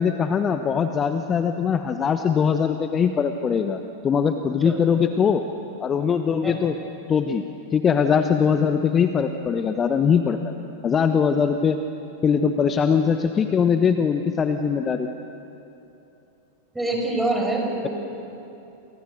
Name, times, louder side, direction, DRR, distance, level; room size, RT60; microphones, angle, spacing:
voice 1, 0.0-5.4 5.8-6.8 7.1-7.4 7.7-10.5 10.8-11.8 12.2-15.1, left 6 dB, 25° left, 8 dB, 1.1 m, -21 dB
voice 2, 16.7-17.9, right 2 dB, 5° right, 1 dB, 6.0 m, -25 dB
29.5 x 28.0 x 6.6 m, 3.0 s
figure-of-eight pair, 90°, 0 cm